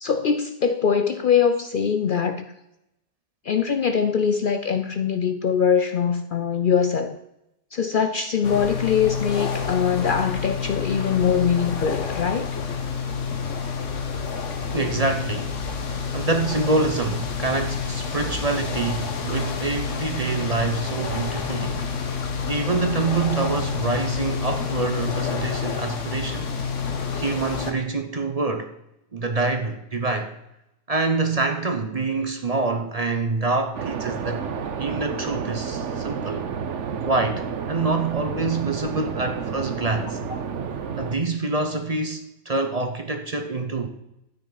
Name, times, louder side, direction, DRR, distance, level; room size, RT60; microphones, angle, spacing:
voice 1, 0.0-2.5 3.4-7.2 7.7-12.5, left 7 dB, 55° left, 0.6 m, -22 dB
sound 1, 8.4-27.7, left 5 dB, 80° left, 1.6 m, -28 dB
voice 2, 14.7-15.6 16.1-21.9 22.5-26.5 27.1-28.7 29.1-30.3 30.9-34.4 34.8-36.5 37.0-40.2 41.0-43.9, right 3 dB, 35° right, 0.8 m, -26 dB
sound 2, 33.7-41.2, right 6 dB, 75° right, 1.2 m, -30 dB
12.5 x 9.3 x 4.0 m
omnidirectional pair, 1.3 m